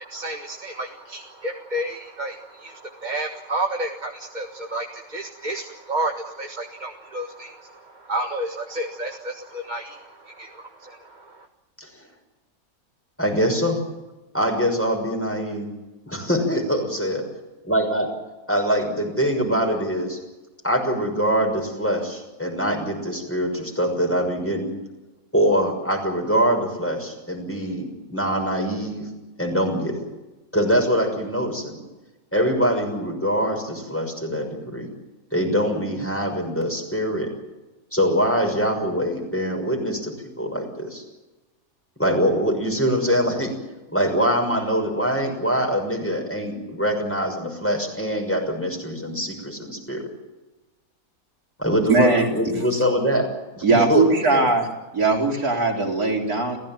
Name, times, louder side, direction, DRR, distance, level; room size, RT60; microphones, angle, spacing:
voice 1, 0.0-11.5, right 1 dB, 30° right, 3 dB, 1.7 m, -31 dB
voice 2, 13.2-13.8 14.3-15.7 16.0-17.2 17.6-18.1 18.5-20.2 20.6-24.7 25.3-29.0 29.4-30.0 30.5-31.8 32.3-34.9 35.3-37.3 37.9-41.0 42.0-43.5 43.9-50.0 51.6-53.3 53.6-54.5, equal, 10° left, 2 dB, 6.1 m, -23 dB
voice 3, 51.9-52.3 53.6-54.7 54.9-56.6, right 3 dB, 85° right, 0 dB, 4.5 m, -19 dB
30.0 x 15.5 x 9.0 m, 1.1 s
omnidirectional pair, 1.6 m